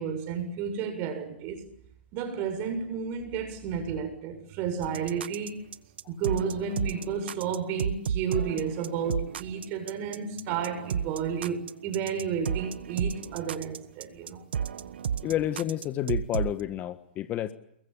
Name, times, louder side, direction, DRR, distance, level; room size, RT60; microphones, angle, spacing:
voice 1, 0.0-1.6 2.1-5.6 6.1-14.5, right 6 dB, 35° right, 7.2 m, -32 dB
sound 1, 4.8-16.6, right 8 dB, 75° right, 1.3 m, -33 dB
voice 2, 15.2-17.5, left 12 dB, 25° left, 1.5 m, -30 dB
30.0 x 22.0 x 8.7 m
hypercardioid pair, 130°, 6 cm